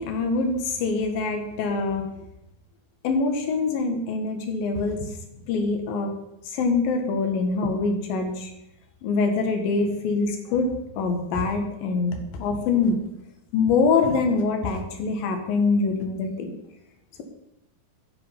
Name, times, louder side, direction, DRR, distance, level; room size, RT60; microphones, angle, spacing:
voice 1, 0.0-2.0 3.0-5.0 5.5-6.1 6.5-8.5 9.0-12.9 13.5-16.5, left 4 dB, 80° left, 4 dB, 3.1 m, -24 dB
13.5 x 5.1 x 5.7 m, 0.87 s
omnidirectional pair, 4.1 m